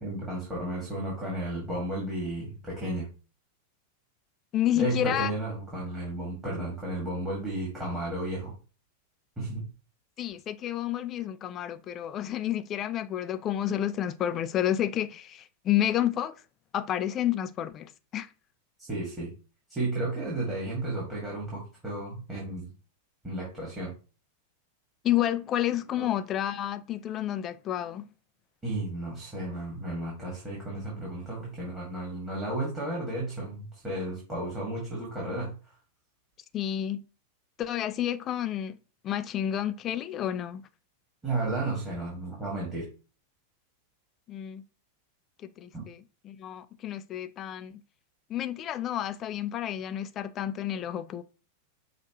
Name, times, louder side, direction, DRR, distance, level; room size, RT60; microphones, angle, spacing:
voice 1, 0.0-3.1 4.8-8.5 9.4-9.6 18.9-19.3 19.7-22.7 23.2-23.9 26.0-26.1 28.6-35.5 41.2-42.9 45.7-45.8, right 1 dB, 15° right, 2.0 m, -33 dB
voice 2, 4.5-5.3 10.2-16.3 16.7-18.3 25.0-28.1 36.5-37.0 37.6-38.8 39.0-40.6 44.3-44.6 45.4-47.8 48.3-51.2, left 11 dB, 30° left, 0.4 m, -30 dB
6.3 x 2.4 x 3.0 m
figure-of-eight pair, 90°, 0 cm